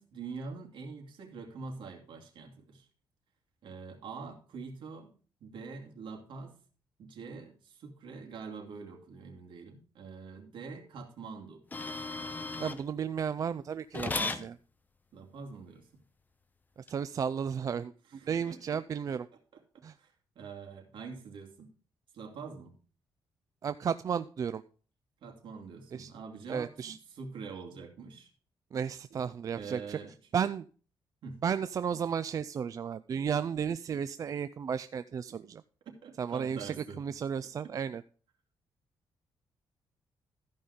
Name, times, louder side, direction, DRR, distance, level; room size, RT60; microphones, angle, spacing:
voice 1, 0.0-2.9 3.6-6.6 7.0-11.6 15.1-15.9 18.1-19.0 19.3-19.6 20.0-21.7 22.1-22.8 25.2-28.3 29.1-29.3 29.5-30.1 31.2-31.4 36.0-37.0, right 5 dB, 70° right, 2 dB, 2.7 m, -45 dB
sound 1, 11.7-12.8 13.9-14.5 16.9-17.0, left 3 dB, 20° left, 0.9 m, -35 dB
voice 2, 12.6-14.6 16.9-17.9 18.3-19.3 19.8-19.9 23.6-24.6 25.9-26.1 26.5-27.0 28.7-30.0 30.3-30.6 31.4-35.6 36.2-38.0, right 7 dB, 40° right, 13 dB, 0.4 m, -33 dB
14.0 x 5.5 x 5.0 m, 0.39 s
cardioid pair, 125°, 9 cm